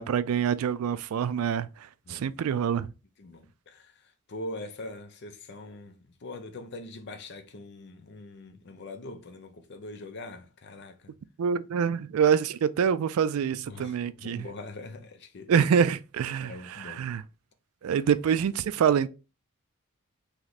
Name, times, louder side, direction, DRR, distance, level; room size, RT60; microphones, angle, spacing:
voice 1, 0.0-1.7 2.1-2.9 11.4-14.5 15.5-17.2 17.8-19.1, right 7 dB, 85° right, 0.3 m, -26 dB
voice 2, 3.2-3.9 4.3-11.1 13.7-15.5 16.4-17.0, left 2 dB, 55° left, 0.6 m, -42 dB
3.1 x 3.0 x 4.0 m
head